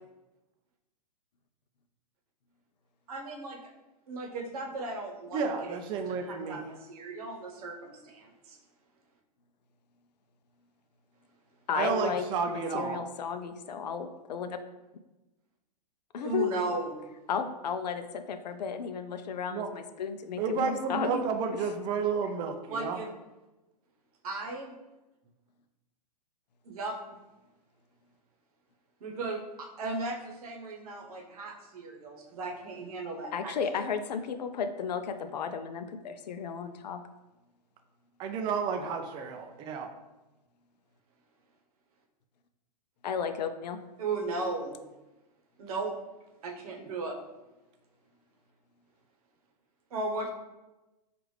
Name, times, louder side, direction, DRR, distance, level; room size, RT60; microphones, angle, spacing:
voice 1, 3.1-3.6 4.1-8.6 16.2-16.9 22.7-23.1 24.2-24.7 26.6-27.0 29.0-33.5 33.8-33.9 44.0-44.8 45.6-45.9 46.4-47.2 49.9-50.3, right 3 dB, 60° right, 1 dB, 0.9 m, -36 dB
voice 2, 5.3-6.6 11.7-13.0 19.5-19.7 20.4-23.0 38.2-39.9, right 5 dB, 20° right, 5 dB, 0.3 m, -31 dB
voice 3, 11.7-14.6 16.1-16.5 17.3-21.2 21.5-21.6 33.3-37.0 43.0-43.8, left 6 dB, 75° left, 9 dB, 0.4 m, -34 dB
4.7 x 2.5 x 3.2 m, 1.1 s
hypercardioid pair, 125°, 21 cm